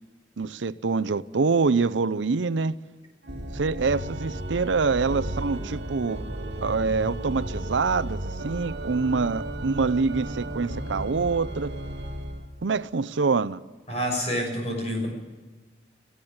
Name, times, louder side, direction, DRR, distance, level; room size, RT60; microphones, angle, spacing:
voice 1, 0.4-2.8 3.5-6.2 6.6-11.7 12.6-13.6, right 4 dB, 85° right, 0.6 m, -25 dB
Organ, 3.2-12.5, right 1 dB, 60° right, 1.9 m, -34 dB
voice 2, 13.9-15.1, equal, 35° left, 6.6 m, -28 dB
19.0 x 16.0 x 8.7 m
head